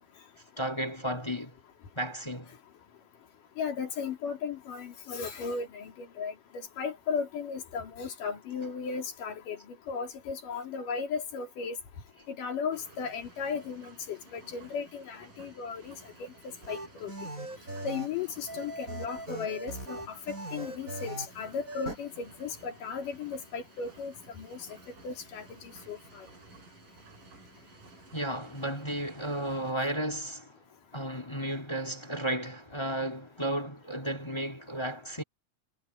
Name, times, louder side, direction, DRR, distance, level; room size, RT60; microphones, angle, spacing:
voice 1, 0.6-1.5 1.9-2.5 28.1-30.6 30.9-35.2, right 1 dB, 10° left, 1.6 m, -33 dB
voice 2, 3.6-11.8 12.3-15.9 16.2-17.1 17.8-24.7 25.0-26.3, left 5 dB, 75° left, 4.4 m, -36 dB
sound 1, 12.7-29.7, right 3 dB, 75° right, 8.8 m, -54 dB
sound 2, 16.6-18.1 18.5-21.3 21.7-21.9, right 2 dB, 25° right, 7.1 m, -39 dB
omnidirectional pair, 3.8 m